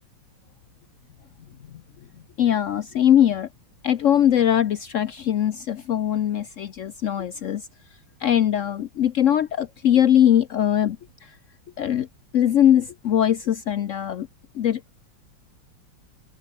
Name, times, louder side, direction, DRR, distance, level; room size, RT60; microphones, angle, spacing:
voice 1, 2.4-3.5 3.8-7.7 8.2-11.0 11.8-12.1 12.3-14.3 14.5-14.8, left 10 dB, 80° left, 0.7 m, -21 dB
omnidirectional pair, 2.3 m